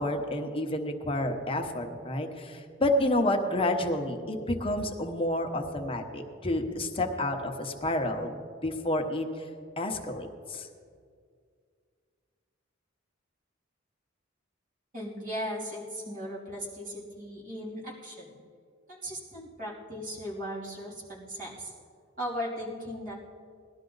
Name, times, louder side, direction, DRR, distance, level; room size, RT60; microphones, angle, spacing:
voice 1, 0.0-9.5 9.8-10.7, left 1 dB, 30° left, 3 dB, 1.1 m, -30 dB
voice 2, 14.9-18.4 18.9-21.7 22.2-23.1, equal, 45° right, -5 dB, 3.2 m, -37 dB
19.0 x 12.0 x 4.0 m, 2.2 s
head